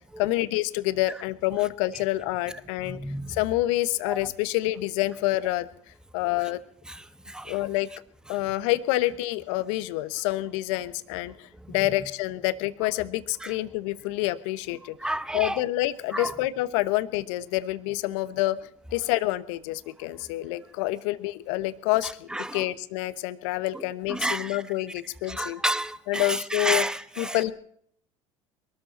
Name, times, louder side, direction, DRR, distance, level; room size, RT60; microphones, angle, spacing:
voice 1, 0.2-3.0 3.3-5.7 6.1-6.6 7.4-7.9 8.3-15.0 15.3-18.6 18.9-25.6 26.1-26.8 27.2-27.5, left 17 dB, 70° left, 1.1 m, -27 dB
voice 2, 2.8-3.4 4.1-4.3 6.9-7.6 8.3-8.4 11.5-11.9 13.4-13.6 15.0-15.6 16.1-16.4 22.0-22.7 23.7-24.6 25.2-27.4, right 1 dB, 5° right, 1.1 m, -31 dB
22.5 x 13.5 x 4.3 m
hypercardioid pair, 75°, 17 cm